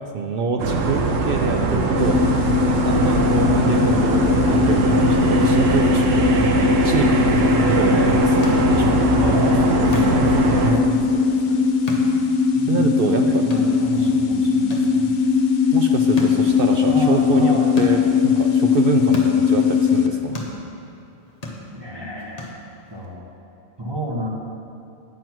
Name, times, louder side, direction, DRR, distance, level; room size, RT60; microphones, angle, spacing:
voice 1, 0.0-2.2 2.8-6.1 6.5-9.1 10.6-10.8 12.7-13.4 15.7-20.4, right 5 dB, 60° right, 3 dB, 0.6 m, -26 dB
sound 1, 0.6-10.7, right 3 dB, 75° right, 1.1 m, -20 dB
sound 2, 2.0-20.1, left 6 dB, 80° left, 1.1 m, -19 dB
sound 3, 7.9-23.1, left 1 dB, 35° left, 0.9 m, -36 dB
voice 2, 9.2-11.6 12.5-15.1 16.9-17.7 18.8-19.0 21.7-22.5 22.9-23.2 23.8-24.3, equal, 20° right, -2 dB, 1.1 m, -30 dB
9.3 x 7.7 x 4.5 m, 2.6 s
omnidirectional pair, 1.3 m